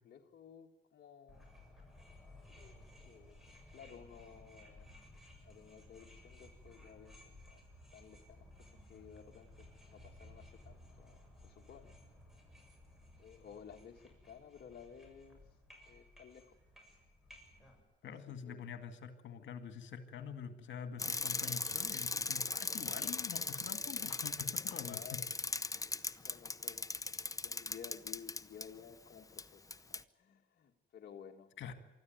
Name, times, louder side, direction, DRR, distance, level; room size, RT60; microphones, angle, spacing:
voice 1, 0.0-1.5 2.5-2.8 3.0-3.4 3.7-4.9 5.4-7.6 7.9-11.9 13.2-15.6 15.9-16.6 17.3-17.7 18.0-18.7 24.8-25.3 26.2-26.9 27.4-31.5, left 7 dB, 55° left, 1 dB, 1.6 m, -55 dB
sound 1, 1.3-17.8, left 1 dB, ahead, 7.3 m, -58 dB
voice 2, 18.0-25.2 26.0-26.2 31.6-31.7, left 7 dB, 70° left, 9 dB, 2.1 m, -46 dB
Bicycle, 21.0-28.7 29.4-29.5 29.7-30.0, left 3 dB, 15° left, 0.8 m, -38 dB
24.5 x 14.0 x 9.4 m, 1.2 s
cardioid pair, 90°, 20 cm